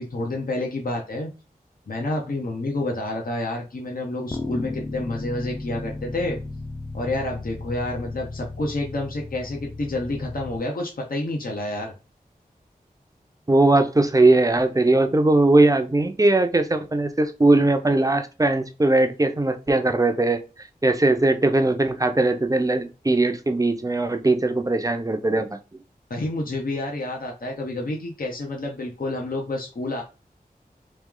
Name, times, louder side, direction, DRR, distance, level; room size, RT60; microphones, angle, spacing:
voice 1, 0.0-1.3 1.9-6.4 6.9-11.9 26.1-30.0, left 2 dB, 65° left, 0.9 m, -29 dB
sound 1, 4.3-10.6, left 2 dB, 25° left, 0.6 m, -35 dB
voice 2, 13.5-20.4 20.8-25.6, right 2 dB, 20° right, 0.6 m, -20 dB
3.2 x 3.0 x 3.7 m
wide cardioid pair, 70°, 16 cm